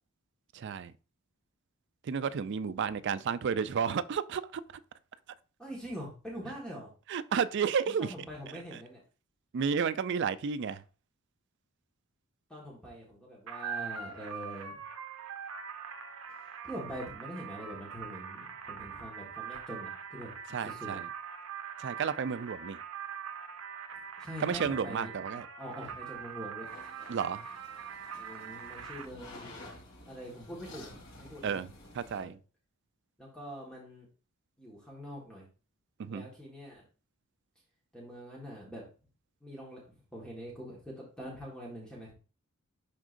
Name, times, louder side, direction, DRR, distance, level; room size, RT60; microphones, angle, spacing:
voice 1, 0.5-0.9 2.0-4.6 7.1-8.1 8.7-8.8 9.5-10.8 20.5-21.1 21.8-22.8 24.4-25.5 27.1-27.5 31.4-31.7 31.9-32.4 36.0-36.3, right 6 dB, 55° right, 0.4 m, -32 dB
voice 2, 5.6-6.9 8.1-9.0 12.5-14.8 16.6-20.3 20.6-21.0 23.9-26.7 28.2-29.5 30.1-30.9 31.2-31.6 32.2-32.3 33.2-34.1 34.6-35.5 36.1-36.8 37.9-38.8 39.4-42.1, equal, 5° left, 1.5 m, -44 dB
sound 1, 13.5-29.1, right 7 dB, 75° right, 0.7 m, -43 dB
sound 2, 26.6-32.2, left 2 dB, 70° left, 2.7 m, -51 dB
11.0 x 3.7 x 2.6 m
head